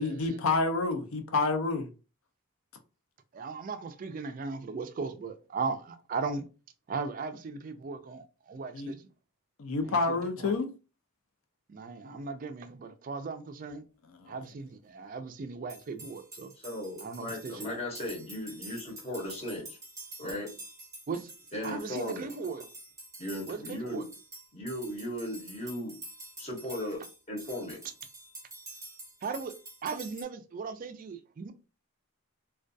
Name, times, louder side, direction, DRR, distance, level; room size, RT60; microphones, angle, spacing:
voice 1, 0.0-1.9 8.7-8.9 9.6-10.7 14.1-14.3, left 3 dB, 70° left, 0.5 m, -28 dB
voice 2, 3.3-6.5 6.9-9.1 9.8-10.6 11.7-13.8 14.3-16.5 17.0-17.8 21.1-21.3 21.6-22.7 23.5-24.1 29.2-29.5 29.8-31.5, right 4 dB, 40° right, 0.3 m, -37 dB
sound 1, 15.7-30.2, right 2 dB, 15° right, 0.7 m, -48 dB
voice 3, 16.6-19.8 20.2-20.5 21.5-22.3 23.2-24.1 24.5-26.0 26.4-27.0 27.3-27.8, left 1 dB, 30° left, 0.7 m, -37 dB
2.3 x 2.2 x 2.5 m
head